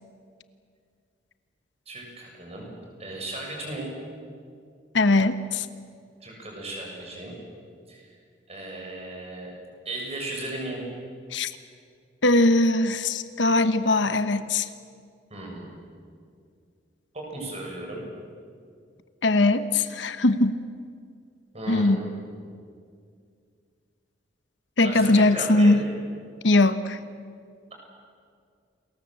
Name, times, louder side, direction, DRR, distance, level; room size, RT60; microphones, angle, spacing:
voice 1, 1.9-2.7 3.0-3.9 6.2-7.3 7.9-8.2 8.5-9.5 9.9-10.8 15.3-15.7 17.1-18.0 21.5-22.4 24.8-25.8, right 2 dB, 35° right, 0 dB, 7.2 m, -35 dB
voice 2, 4.9-5.7 11.3-11.5 12.2-14.7 19.2-20.6 21.7-22.0 24.8-25.8 26.4-27.0, left 2 dB, 75° left, 11 dB, 1.1 m, -20 dB
29.0 x 21.5 x 7.7 m, 2.2 s
head